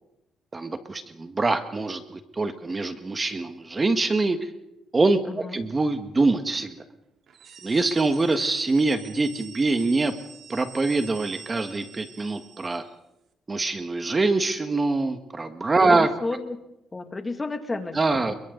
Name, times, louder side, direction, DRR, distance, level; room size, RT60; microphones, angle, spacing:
voice 1, 0.5-4.4 4.9-6.8 7.6-10.1 10.5-12.8 13.5-16.1 17.9-18.3, right 3 dB, 25° right, 8 dB, 1.6 m, -24 dB
voice 2, 5.3-5.6 15.9-16.6 16.9-18.0 18.3-18.4, left 3 dB, 25° left, 6 dB, 2.4 m, -31 dB
sound 1, 7.3-13.0, right 7 dB, 65° right, 3.0 m, -45 dB
29.0 x 23.0 x 4.0 m, 0.88 s
cardioid pair, 90°, 0 cm